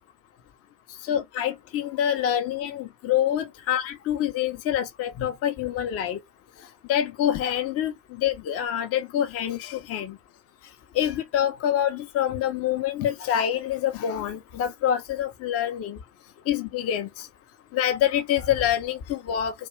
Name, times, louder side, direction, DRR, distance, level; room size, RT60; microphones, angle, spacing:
voice 1, 1.1-6.2 6.9-7.9 8.2-10.1 11.0-16.0 16.5-17.1 17.7-19.5, left 10 dB, 40° left, 0.5 m, -26 dB
2.3 x 2.1 x 3.2 m
figure-of-eight pair, 45°, 38 cm